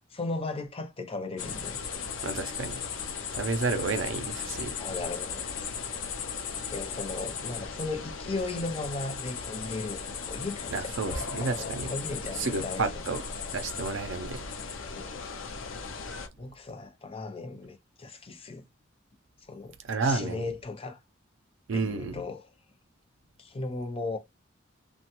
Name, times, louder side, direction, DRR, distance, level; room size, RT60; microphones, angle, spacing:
voice 1, 0.1-1.8 4.8-5.7 6.7-13.0 14.9-15.3 16.4-18.7 19.4-19.8 20.0-21.0 21.7-22.5 23.4-24.2, left 3 dB, 30° left, 0.6 m, -36 dB
sound 1, 1.4-16.3, left 5 dB, 80° left, 0.6 m, -37 dB
voice 2, 2.2-2.8 3.3-4.7 10.7-11.9 12.3-13.2 13.5-14.5 19.8-20.4 21.7-22.2, right 3 dB, 70° right, 0.5 m, -31 dB
2.9 x 2.2 x 2.9 m
head